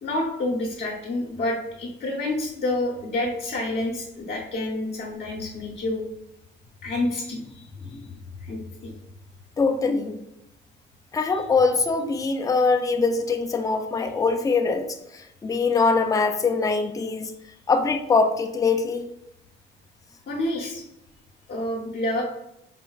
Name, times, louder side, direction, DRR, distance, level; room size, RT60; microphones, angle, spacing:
voice 1, 0.0-6.0 6.8-7.6 8.4-8.9 20.3-20.8 21.5-22.2, left 1 dB, 55° left, -2 dB, 0.8 m, -28 dB
voice 2, 9.6-10.2 11.1-14.9 15.1-17.3 17.7-19.1, left 4 dB, 15° left, 4 dB, 0.4 m, -23 dB
4.1 x 2.1 x 2.3 m, 0.81 s
cardioid pair, 90°, 20 cm